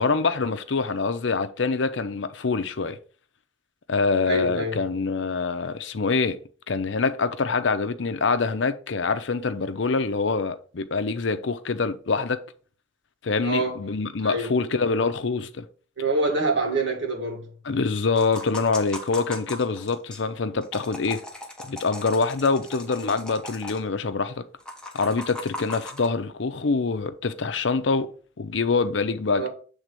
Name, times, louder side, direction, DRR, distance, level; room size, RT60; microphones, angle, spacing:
voice 1, 0.0-3.0 3.9-6.4 6.7-12.4 13.2-15.7 17.6-21.2 21.6-24.4 24.9-28.1 28.4-29.5, left 4 dB, 70° left, 0.6 m, -25 dB
voice 2, 4.3-4.8 13.4-13.8 14.2-14.5 16.0-17.5 29.3-29.5, right 2 dB, 65° right, 2.1 m, -26 dB
sound 1, 18.2-20.2 20.6-23.8 24.6-26.1, left 1 dB, 5° left, 1.0 m, -38 dB
7.5 x 3.6 x 5.1 m
head